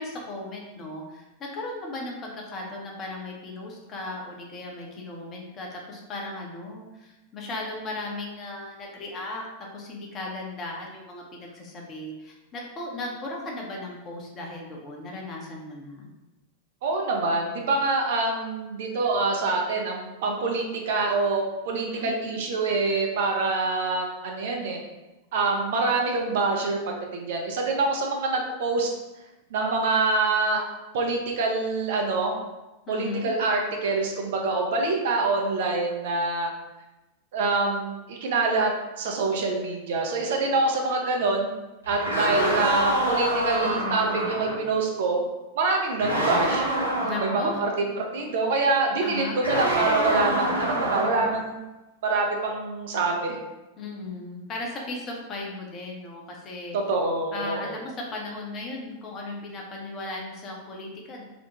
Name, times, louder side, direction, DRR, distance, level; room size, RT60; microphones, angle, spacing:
voice 1, 0.0-9.4 9.7-16.1 21.7-22.1 32.9-33.3 47.0-47.6 49.0-49.4 53.8-56.8 57.3-61.2, left 2 dB, 30° left, -1 dB, 0.6 m, -36 dB
voice 2, 16.8-24.8 25.3-28.9 29.5-30.6 30.9-32.3 32.9-36.5 37.3-38.7 39.0-41.5 41.9-45.2 45.6-46.7 47.2-47.7 48.0-51.6 52.0-53.4 56.7-57.7, right 3 dB, 55° right, 1 dB, 0.4 m, -25 dB
sound 1, 41.8-44.6 46.0-47.5 49.4-51.4, right 1 dB, 90° left, 0.6 m, -26 dB
2.5 x 2.0 x 2.9 m, 1.0 s
figure-of-eight pair, 90°, 0 cm